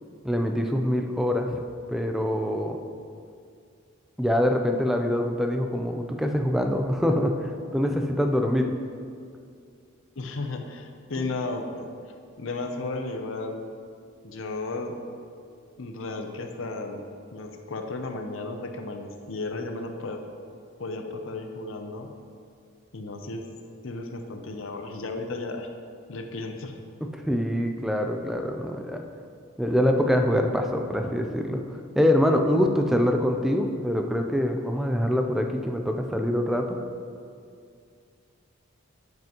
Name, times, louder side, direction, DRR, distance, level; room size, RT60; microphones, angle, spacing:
voice 1, 0.2-1.6 1.9-2.8 4.2-8.7 11.2-11.3 27.0-29.0 29.6-31.6 32.0-36.8, equal, ahead, 3 dB, 0.4 m, -24 dB
voice 2, 10.2-11.9 12.4-13.7 14.2-15.0 15.8-17.0 17.3-20.2 20.8-22.1 22.9-23.4 23.8-25.7 26.1-26.8, left 3 dB, 65° left, 5 dB, 0.6 m, -34 dB
9.2 x 7.7 x 3.0 m, 2.3 s
head